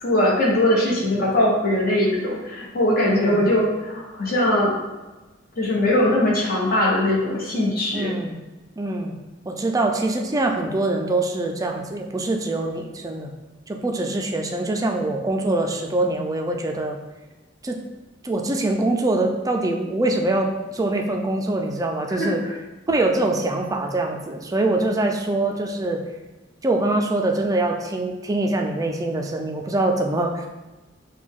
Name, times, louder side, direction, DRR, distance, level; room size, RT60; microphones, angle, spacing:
voice 1, 0.0-4.7 5.6-8.1 22.2-22.3, left 1 dB, 50° left, -3 dB, 1.1 m, -21 dB
voice 2, 3.1-3.5 7.9-8.4 8.8-9.1 9.5-13.3 13.7-17.0 17.6-17.8 18.2-22.4 22.9-26.0 26.6-30.5, right 2 dB, 20° right, 3 dB, 0.4 m, -24 dB
5.0 x 2.3 x 3.6 m, 1.1 s
head